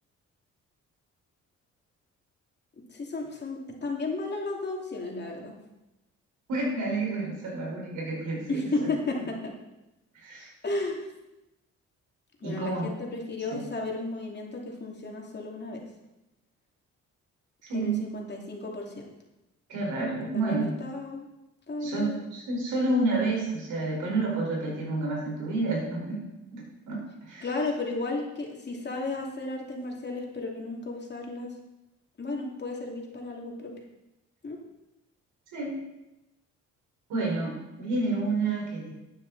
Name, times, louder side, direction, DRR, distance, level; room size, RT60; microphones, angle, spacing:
voice 1, 2.9-5.6 8.5-9.5 10.6-11.0 12.4-15.8 17.7-18.9 20.2-21.3 21.7-22.2 27.4-31.5 32.2-33.7 34.4-34.6, left 3 dB, 35° left, -1 dB, 2.6 m, -33 dB
voice 2, 6.5-8.7 10.1-10.5 12.4-12.9 13.5-13.6 17.6-18.0 19.7-20.8 21.8-26.2 26.5-27.5 35.5-35.8 37.1-38.9, right 2 dB, 80° right, -2 dB, 4.8 m, -29 dB
12.0 x 9.1 x 4.1 m, 0.97 s
cardioid pair, 90°, 30 cm